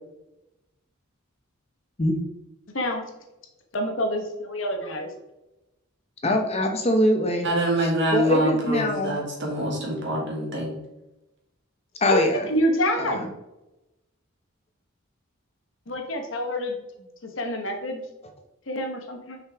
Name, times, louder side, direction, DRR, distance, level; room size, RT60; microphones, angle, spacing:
voice 1, 3.7-5.1 12.1-13.2 15.9-16.8 17.4-18.0 18.7-19.4, equal, 65° left, 4 dB, 1.1 m, -26 dB
voice 2, 6.2-7.5 7.8-9.2 12.0-12.5 13.0-13.3, left 1 dB, 30° left, 3 dB, 0.8 m, -23 dB
voice 3, 7.4-10.7, right 1 dB, 60° right, -2 dB, 2.0 m, -25 dB
5.8 x 5.3 x 3.5 m, 0.95 s
head